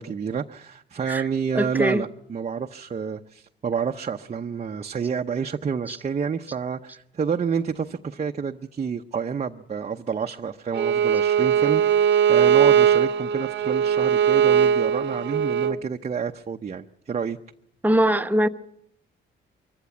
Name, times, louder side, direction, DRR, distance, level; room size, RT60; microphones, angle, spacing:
voice 1, 0.0-17.4, right 6 dB, 35° right, 0.7 m, -29 dB
voice 2, 1.5-2.0 5.9-6.0 17.8-18.5, equal, 10° right, 0.9 m, -21 dB
Bowed string instrument, 10.7-15.8, right 8 dB, 65° right, 0.9 m, -20 dB
23.5 x 14.5 x 8.3 m
cardioid pair, 90°, 20 cm